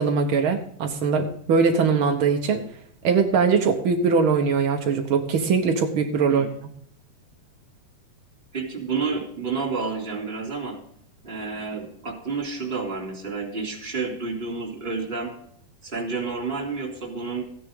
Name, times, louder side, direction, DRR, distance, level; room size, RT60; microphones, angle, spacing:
voice 1, 0.0-2.6 3.0-6.5, right 5 dB, 85° right, 3 dB, 1.1 m, -21 dB
voice 2, 8.5-10.8 11.2-15.3 15.8-17.4, right 4 dB, 15° right, 0 dB, 3.1 m, -30 dB
15.0 x 9.9 x 3.7 m, 0.65 s
omnidirectional pair, 4.1 m